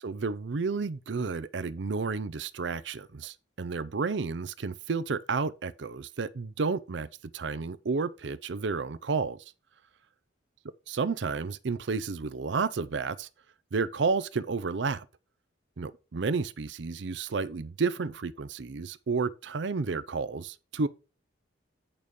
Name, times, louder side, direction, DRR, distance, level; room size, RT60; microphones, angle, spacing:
voice 1, 0.0-7.1 7.3-9.4 10.9-13.3 13.7-15.0 15.8-20.9, right 4 dB, 65° right, 0.5 m, -31 dB
8.8 x 5.3 x 4.7 m
head